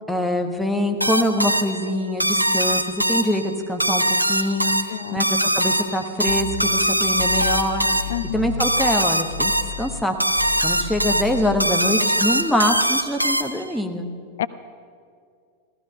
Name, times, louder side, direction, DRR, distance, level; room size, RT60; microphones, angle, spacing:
voice 1, 0.1-2.8 3.1-4.7 5.1-7.9 8.3-10.1 10.6-14.1, left 1 dB, ahead, 4 dB, 1.3 m, -24 dB
sound 1, 1.0-13.8, right 1 dB, 90° right, 0.5 m, -22 dB
voice 2, 4.9-5.2 8.1-8.5 14.4-14.5, left 11 dB, 60° left, 15 dB, 0.4 m, -28 dB
sound 2, 6.3-9.0 9.3-11.7, left 4 dB, 90° left, 0.8 m, -33 dB
15.5 x 14.5 x 5.7 m, 2.2 s
figure-of-eight pair, 90°, 0 cm